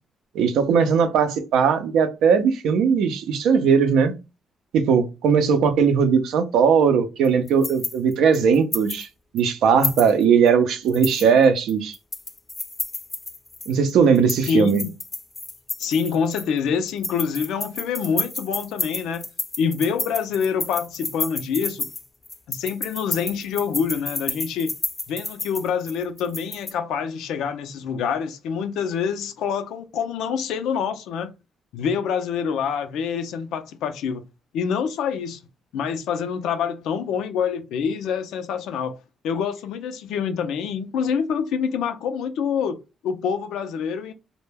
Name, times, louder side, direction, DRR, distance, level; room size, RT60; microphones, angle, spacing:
voice 1, 0.3-4.1 4.7-9.1 9.3-12.0 13.7-14.8, right 6 dB, 85° right, 0.5 m, -19 dB
sound 1, 7.2-9.1 9.4-9.5 9.8-10.5 10.9-13.7 14.2-16.6 16.9-26.7, left 3 dB, 25° left, 0.4 m, -31 dB
voice 2, 14.5-14.9 15.8-19.3 19.6-21.9 22.5-24.7 25.1-31.3 31.7-34.2 34.5-35.4 35.7-39.0 39.2-44.1, left 6 dB, 85° left, 0.4 m, -26 dB
2.2 x 2.1 x 3.2 m
cardioid pair, 90°, 0 cm